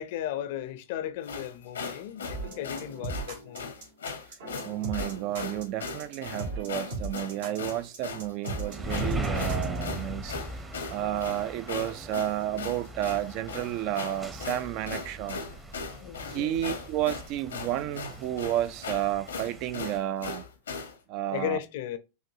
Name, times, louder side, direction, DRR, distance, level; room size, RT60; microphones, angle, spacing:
voice 1, 0.0-3.7 16.0-16.6 21.3-22.0, left 11 dB, 60° left, 0.5 m, -35 dB
sound 1, 1.2-20.9, left 5 dB, 90° left, 0.8 m, -38 dB
sound 2, 2.3-9.8, right 3 dB, 75° right, 1.5 m, -38 dB
voice 2, 4.6-10.4 10.9-15.4 16.3-20.4 21.1-21.6, right 13 dB, 50° right, 0.3 m, -31 dB
sound 3, 8.7-20.0, right 1 dB, 15° right, 0.7 m, -39 dB
5.6 x 2.6 x 2.7 m
hypercardioid pair, 100°, 0 cm